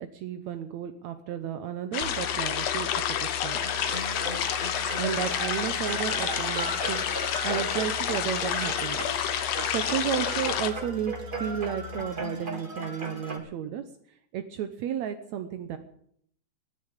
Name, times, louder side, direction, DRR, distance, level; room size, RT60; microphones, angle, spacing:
voice 1, 0.0-3.6 5.0-9.1 9.7-13.8 14.3-15.8, right 9 dB, 75° right, 8 dB, 2.2 m, -33 dB
sound 1, 1.9-10.7, left 9 dB, 70° left, 2.3 m, -29 dB
sound 2, 2.0-12.0, left 19 dB, 90° left, 1.0 m, -43 dB
sound 3, 3.5-13.4, right 2 dB, 20° right, 1.8 m, -37 dB
15.5 x 10.0 x 8.8 m, 0.67 s
omnidirectional pair, 3.3 m